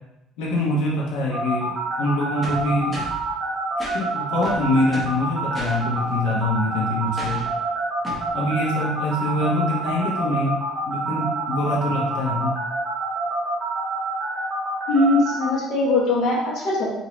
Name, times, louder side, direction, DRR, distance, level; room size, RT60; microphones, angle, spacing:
voice 1, 0.4-3.0 3.9-7.4 8.3-10.6 10.9-12.6, left 1 dB, 85° left, -4 dB, 1.0 m, -24 dB
sound 1, 1.3-15.5, right 3 dB, 25° right, 1.4 m, -27 dB
sound 2, 2.4-3.2 3.8-4.0 4.4-5.2 5.5-5.8 7.2-7.5 8.0-8.3, equal, ahead, 0.9 m, -34 dB
voice 2, 14.9-16.9, left 2 dB, 50° left, -4 dB, 1.1 m, -21 dB
4.6 x 2.7 x 3.0 m, 0.93 s
cardioid pair, 175°, 0 cm